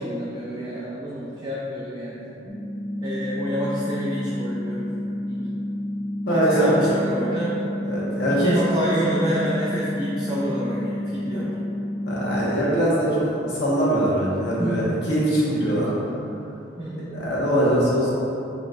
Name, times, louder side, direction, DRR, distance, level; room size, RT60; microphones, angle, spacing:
voice 1, 0.0-2.3 3.0-4.9 5.3-5.6 6.3-7.5 8.3-11.5 14.6-14.8 16.8-17.1, equal, 20° right, -8 dB, 0.6 m, -28 dB
sound 1, 2.5-12.5, left 1 dB, 40° left, 0.8 m, -30 dB
voice 2, 6.2-6.9 7.8-8.6 11.3-11.5 12.1-15.9 17.1-18.1, right 1 dB, 65° left, -7 dB, 1.2 m, -22 dB
6.4 x 3.3 x 2.5 m, 2.9 s
head